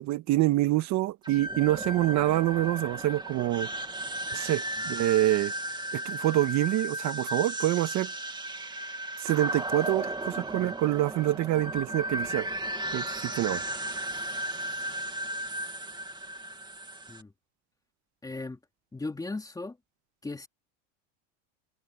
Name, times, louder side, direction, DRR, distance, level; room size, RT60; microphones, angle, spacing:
voice 1, 0.0-3.7 4.3-5.5 5.9-8.1 9.2-12.5 12.9-13.6, right 15 dB, 45° right, 1.8 m, -26 dB
sound 1, 1.2-17.2, right 1 dB, 10° right, 2.3 m, -35 dB
voice 2, 18.2-18.6 18.9-19.8 20.2-20.5, left 3 dB, 10° left, 3.0 m, -36 dB
supercardioid pair, 130°, 38 cm